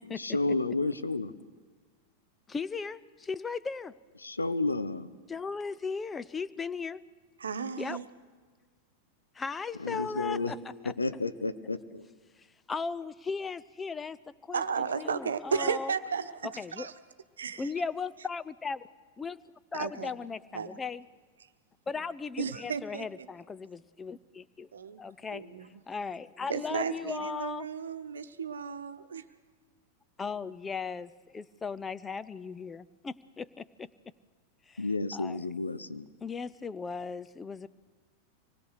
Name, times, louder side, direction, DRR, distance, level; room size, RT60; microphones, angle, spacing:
voice 1, 0.1-1.3 4.2-5.1 9.8-10.6 10.8-12.0 34.8-36.1, left 3 dB, 80° left, 11 dB, 0.9 m, -31 dB
voice 2, 2.5-4.0 5.3-7.0 7.8-8.0 9.3-10.6 10.8-10.9 12.7-15.9 16.4-16.9 17.6-18.9 19.2-19.4 19.7-21.1 21.9-24.7 25.0-25.4 25.9-27.7 30.2-33.9 34.7-34.8 35.1-35.4 36.2-37.7, left 5 dB, 15° left, 16 dB, 0.6 m, -37 dB
voice 3, 7.4-8.1 14.5-16.9 17.4-17.7 19.7-20.1 20.5-20.8 22.4-23.0 24.7-25.0 25.3-25.7 26.5-29.2, right 6 dB, 70° right, 10 dB, 1.1 m, -34 dB
25.0 x 20.0 x 6.6 m, 1.5 s
figure-of-eight pair, 90°, 0 cm